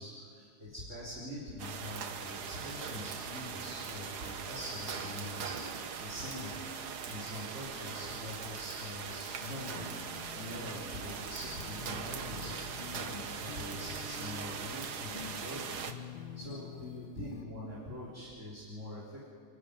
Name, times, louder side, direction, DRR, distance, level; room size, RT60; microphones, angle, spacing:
voice 1, 0.0-6.5 7.1-9.8 10.3-12.5 12.9-15.7 16.3-19.3, left 1 dB, 25° right, -7 dB, 4.3 m, -44 dB
sound 1, 1.6-15.9, right 6 dB, 60° right, 1.0 m, -41 dB
sound 2, 9.4-17.4, left 7 dB, 55° left, 1.6 m, -48 dB
29.0 x 13.0 x 9.0 m, 2.3 s
omnidirectional pair, 3.3 m